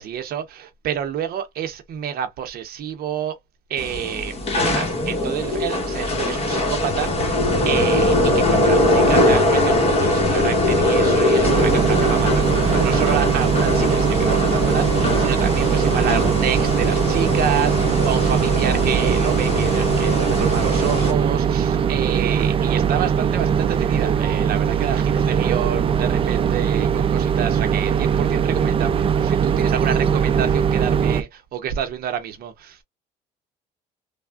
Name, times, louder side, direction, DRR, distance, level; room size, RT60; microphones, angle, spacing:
voice 1, 0.0-3.4 3.7-32.8, right 9 dB, 65° right, 0.7 m, -29 dB
sound 1, 3.8-21.1, left 1 dB, 35° left, 1.1 m, -21 dB
sound 2, 11.4-31.2, right 7 dB, 35° right, 0.4 m, -20 dB
3.3 x 2.1 x 2.3 m
cardioid pair, 110°, 17 cm